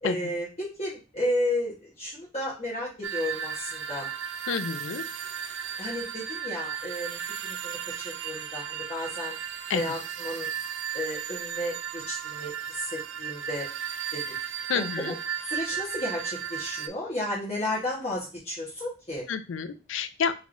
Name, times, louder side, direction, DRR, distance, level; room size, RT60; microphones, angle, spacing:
voice 1, 0.0-4.1 5.8-9.4 9.7-10.5 10.9-13.7 14.1-14.2 14.7-15.1 15.4-19.3, left 1 dB, 30° left, -7 dB, 1.1 m, -33 dB
sound 1, 3.0-16.9, right 8 dB, 60° right, 0.4 m, -35 dB
voice 2, 4.5-5.0 9.7-9.8 14.7-15.1 19.3-20.3, left 6 dB, 70° left, 12 dB, 0.4 m, -29 dB
5.5 x 3.0 x 2.5 m, 0.33 s
head